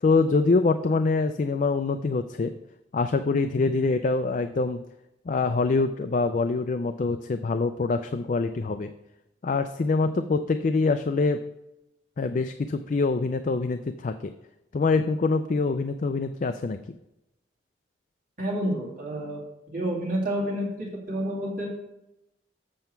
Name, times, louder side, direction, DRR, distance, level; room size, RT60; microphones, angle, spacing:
voice 1, 0.0-2.5 2.9-4.8 5.3-8.9 9.4-11.4 12.2-14.3 14.7-16.8, left 3 dB, 45° left, 8 dB, 0.4 m, -25 dB
voice 2, 18.4-19.4 19.7-21.7, right 1 dB, 50° right, -3 dB, 2.5 m, -29 dB
7.7 x 6.8 x 4.5 m, 0.88 s
head